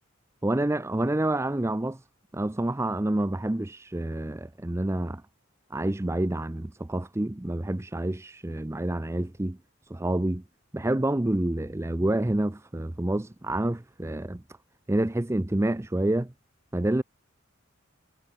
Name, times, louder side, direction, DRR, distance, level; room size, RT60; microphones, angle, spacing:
voice 1, 0.4-2.0 2.3-5.2 5.7-9.6 9.9-10.4 10.7-14.4 14.9-16.3 16.7-17.0, right 1 dB, 15° right, 0.5 m, -28 dB
head